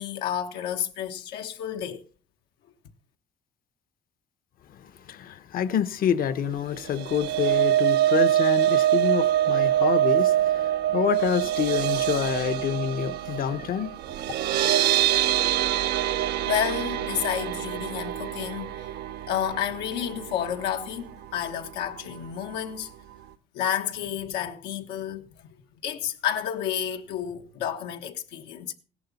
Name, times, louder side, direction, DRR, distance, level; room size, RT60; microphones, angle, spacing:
voice 1, 0.0-2.0 16.5-18.9 19.3-22.9 23.5-25.5 25.8-28.7, left 9 dB, 85° left, 1.3 m, -30 dB
voice 2, 4.7-13.9, left 9 dB, 60° left, 1.0 m, -27 dB
sound 1, 6.8-21.0 21.3-21.6 21.9-22.0, right 12 dB, 75° right, 0.7 m, -25 dB
16.0 x 11.0 x 4.1 m
cardioid pair, 110°, 17 cm